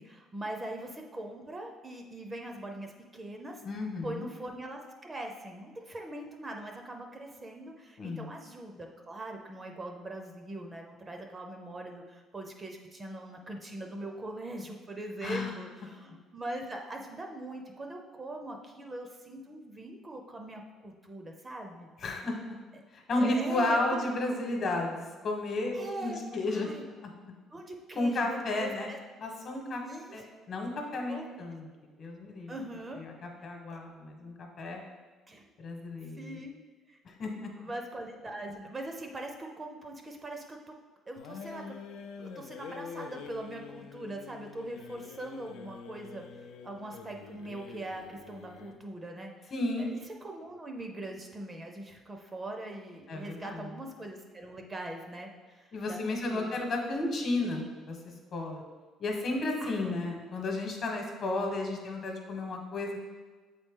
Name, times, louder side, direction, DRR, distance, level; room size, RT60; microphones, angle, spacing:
voice 1, 0.0-3.6 4.0-21.9 23.1-24.0 25.7-26.9 27.5-29.0 29.8-30.3 31.0-31.3 32.5-33.0 33.7-33.8 35.3-35.5 36.2-36.6 36.9-37.0 37.6-40.7 41.1-41.8 42.2-56.6 59.6-59.9, right 1 dB, 20° right, 3 dB, 0.5 m, -42 dB
voice 2, 3.6-4.3 8.0-8.3 15.2-15.5 22.0-22.6 22.9-26.7 27.0-27.1 28.0-28.9 29.2-29.8 30.1-31.7 32.0-32.5 33.0-33.1 33.4-34.8 35.6-36.4 37.0-37.5 49.5-49.9 53.1-53.7 55.7-58.0 58.3-58.6 59.0-63.0, left 2 dB, 45° left, 2 dB, 1.1 m, -33 dB
sound 1, 41.2-48.8, left 6 dB, 80° left, 0.5 m, -46 dB
7.4 x 4.1 x 3.7 m, 1.4 s
cardioid pair, 150°, 0 cm